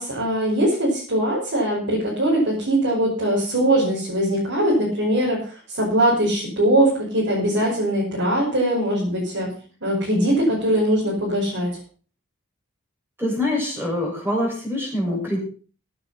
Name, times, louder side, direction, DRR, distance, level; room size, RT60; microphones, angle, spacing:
voice 1, 0.0-9.5 9.8-11.8, right 1 dB, 60° right, -5 dB, 5.6 m, -21 dB
voice 2, 13.2-15.4, left 1 dB, 10° right, 0 dB, 6.7 m, -24 dB
14.5 x 9.2 x 5.7 m, 0.40 s
head